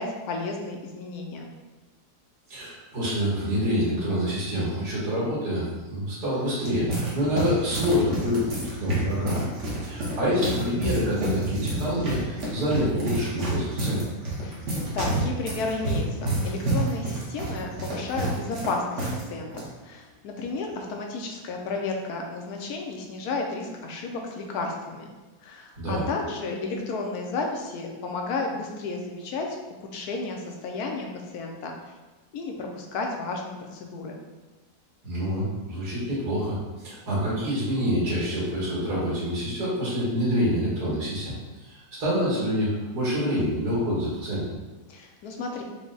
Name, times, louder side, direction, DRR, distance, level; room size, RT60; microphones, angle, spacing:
voice 1, 0.0-1.5 14.4-14.6 14.9-25.1 25.4-31.7 32.3-34.1 44.9-45.6, left 3 dB, 75° left, 1 dB, 1.1 m, -32 dB
voice 2, 2.5-9.5 9.8-14.0 25.8-26.1 35.0-36.6 36.8-41.3 41.6-44.6, equal, 85° right, -8 dB, 2.2 m, -27 dB
sound 1, 6.3-19.2 19.5-19.7 20.4-20.7, right 1 dB, 55° right, 1.2 m, -29 dB
4.7 x 2.2 x 3.9 m, 1.2 s
omnidirectional pair, 1.7 m